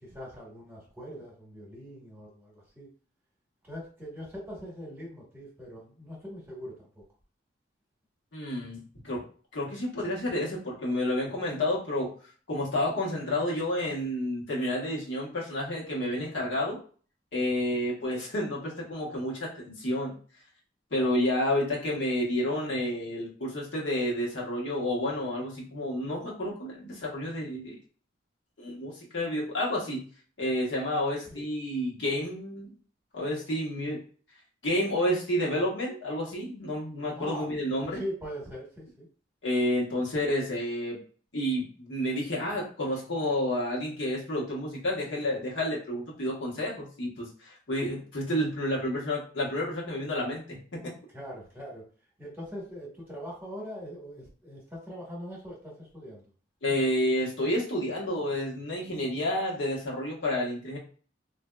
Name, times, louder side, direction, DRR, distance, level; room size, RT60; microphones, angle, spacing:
voice 1, 0.0-2.9 3.6-7.0 31.3-31.5 37.1-39.1 51.1-51.8 52.2-56.2, equal, 10° right, -4 dB, 1.1 m, -42 dB
voice 2, 8.3-9.2 9.5-12.1 12.5-16.8 17.3-20.1 20.9-27.8 28.6-30.0 30.4-32.7 33.1-34.0 34.6-38.0 39.4-41.0 41.3-50.9 56.6-60.8, left 1 dB, 75° left, -4 dB, 1.2 m, -30 dB
3.5 x 2.5 x 2.2 m, 0.42 s
head